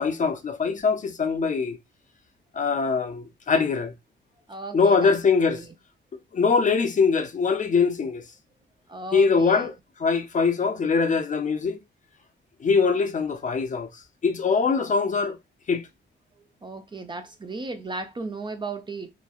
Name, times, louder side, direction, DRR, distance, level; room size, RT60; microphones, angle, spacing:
voice 1, 0.0-1.8 2.5-3.9 4.7-5.6 6.3-8.2 9.1-9.7 10.0-11.8 12.6-15.4 15.7-15.9, left 5 dB, 40° left, 0.5 m, -23 dB
voice 2, 4.5-5.1 5.5-5.7 8.9-9.7 16.4-19.1, right 3 dB, 25° right, 0.4 m, -36 dB
2.9 x 2.1 x 2.3 m
cardioid pair, 80°, 20 cm